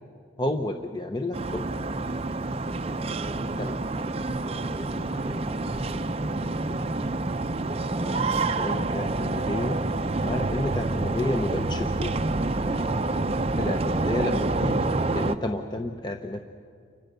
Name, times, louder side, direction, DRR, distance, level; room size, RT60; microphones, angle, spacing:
voice 1, 0.4-1.8 3.6-3.8 7.9-9.8 10.2-12.2 13.6-16.4, left 1 dB, 20° left, 5 dB, 0.9 m, -31 dB
sound 1, 1.3-15.3, right 2 dB, 30° right, 0.6 m, -28 dB
voice 2, 2.8-6.8, equal, 5° right, 4 dB, 1.3 m, -44 dB
29.5 x 25.0 x 6.8 m, 2.2 s
head